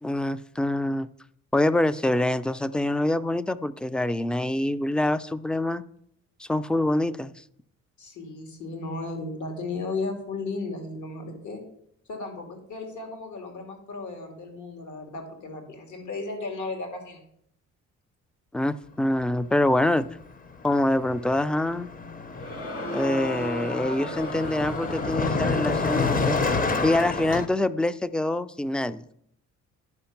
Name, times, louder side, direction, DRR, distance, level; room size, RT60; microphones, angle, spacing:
voice 1, 0.0-1.1 1.5-5.8 6.4-7.3 18.5-20.1 20.6-21.9 22.9-26.4 26.8-29.0, left 1 dB, 5° left, 15 dB, 0.3 m, -25 dB
voice 2, 8.0-11.6 12.1-17.2, left 3 dB, 75° left, 4 dB, 2.2 m, -35 dB
Car passing by, 20.0-20.2 20.5-27.5, left 4 dB, 30° left, 0.7 m, -29 dB
Crowd, 22.3-27.3, equal, 50° left, 1.9 m, -35 dB
10.5 x 5.2 x 5.8 m, 0.71 s
cardioid pair, 90°, 30 cm